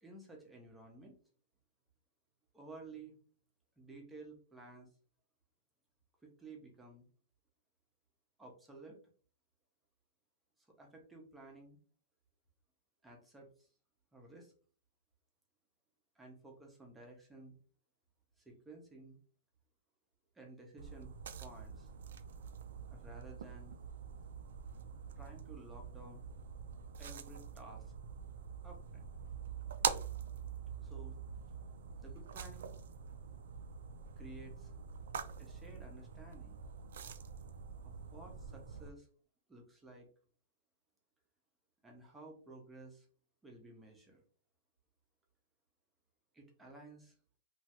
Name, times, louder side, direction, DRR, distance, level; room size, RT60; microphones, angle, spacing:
voice 1, 0.0-1.1 2.5-3.2 3.8-4.9 6.2-7.0 8.4-9.0 10.8-11.8 13.0-13.7 14.1-14.5 16.2-17.5 18.4-19.2 20.4-21.1 21.4-21.9 22.9-23.7 25.2-26.2 27.0-27.9 28.6-29.1 30.8-31.2 32.0-32.7 34.2-34.7 35.4-36.6 37.8-39.1 39.5-40.1 41.8-43.1 43.4-44.2 46.3-47.1, right 2 dB, 5° right, 1 dB, 0.5 m, -54 dB
sound 1, 20.8-38.9, right 7 dB, 65° right, 0.3 m, -45 dB
3.0 x 2.3 x 2.8 m, 0.43 s
supercardioid pair, 180°, 0 cm